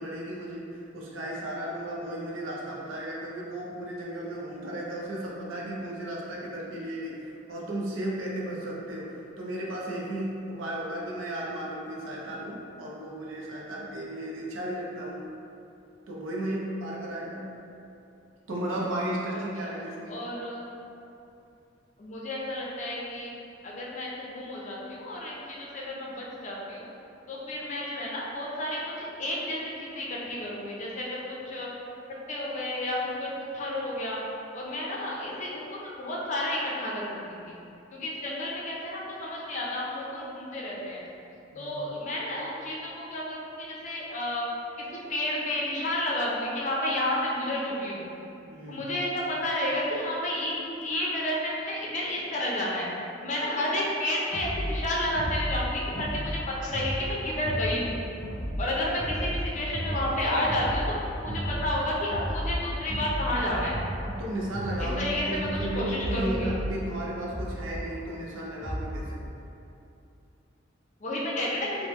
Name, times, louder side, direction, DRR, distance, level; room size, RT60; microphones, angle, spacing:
voice 1, 0.0-7.2 7.5-15.3 16.1-17.5 18.5-20.2 41.5-41.7 48.5-48.9 64.0-69.2, right 1 dB, 90° right, -4 dB, 0.5 m, -34 dB
voice 2, 20.1-20.7 22.0-23.3 23.6-26.8 27.3-31.7 32.3-34.2 34.5-37.3 37.9-41.0 41.6-44.4 44.8-48.1 48.7-52.9 53.2-58.0 58.6-63.8 64.8-66.6 71.0-71.7, left 1 dB, 40° left, -4 dB, 0.5 m, -31 dB
sound 1, 54.3-69.1, equal, 10° right, 0.5 m, -34 dB
3.2 x 2.1 x 3.0 m, 2.7 s
head